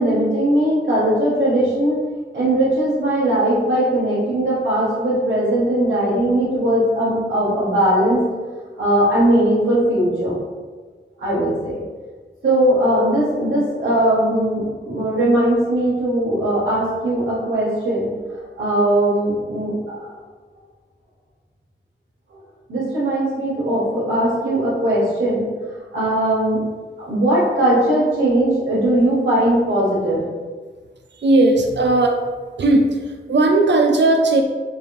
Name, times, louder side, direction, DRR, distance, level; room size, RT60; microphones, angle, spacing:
voice 1, 0.0-2.0 2.3-8.2 8.8-10.3 11.2-11.8 12.4-18.1 18.3-19.7 20.0-20.1 22.7-25.4 25.9-26.6 27.0-30.2, right 1 dB, 80° right, -10 dB, 1.3 m, -19 dB
voice 2, 31.2-32.2 32.6-32.9 33.3-34.4, right 2 dB, 65° right, 3 dB, 0.6 m, -15 dB
5.4 x 2.6 x 3.2 m, 1.4 s
wide cardioid pair, 110°, 20 cm